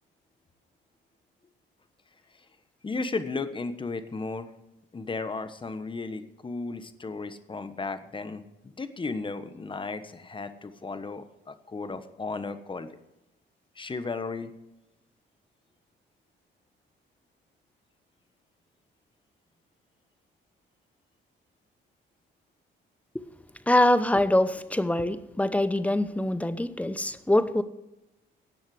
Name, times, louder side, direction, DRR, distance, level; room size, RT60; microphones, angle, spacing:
voice 1, 2.8-4.5 4.9-13.0 13.8-14.5, left 3 dB, 25° left, 11 dB, 1.2 m, -35 dB
voice 2, 23.7-27.6, left 1 dB, 5° left, 13 dB, 0.9 m, -24 dB
18.0 x 6.3 x 7.8 m, 0.95 s
cardioid pair, 90°, 20 cm